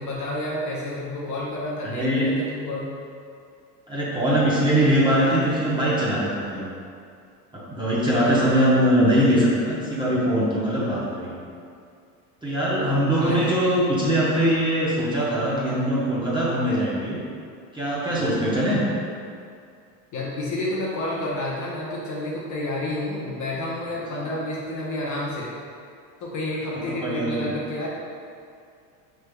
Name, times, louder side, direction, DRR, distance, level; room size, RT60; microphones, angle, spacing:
voice 1, 0.0-2.9 8.1-8.5 13.1-13.7 20.1-25.5 26.2-27.9, left 1 dB, 35° left, -5 dB, 0.8 m, -30 dB
voice 2, 1.8-2.3 3.9-6.7 7.7-11.4 12.4-17.2 17.7-18.8 27.0-27.5, equal, 10° right, -9 dB, 1.0 m, -22 dB
4.9 x 3.3 x 2.3 m, 2.4 s
supercardioid pair, 105°, 49 cm